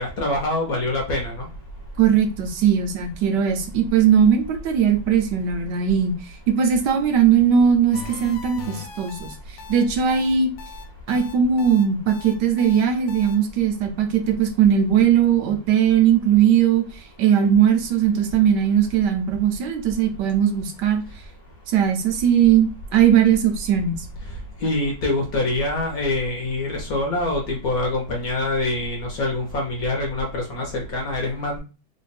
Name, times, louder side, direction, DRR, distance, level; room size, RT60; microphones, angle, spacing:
voice 1, 0.0-1.5 24.6-31.6, left 2 dB, 60° left, 0 dB, 1.0 m, -25 dB
voice 2, 2.0-6.1 6.5-9.3 9.7-10.5 11.1-16.9 17.2-21.0 21.7-24.1, right 8 dB, 75° right, 5 dB, 1.1 m, -19 dB
sound 1, 7.9-13.4, left 6 dB, 80° left, 1.3 m, -39 dB
3.2 x 2.2 x 4.1 m, 0.33 s
omnidirectional pair, 2.1 m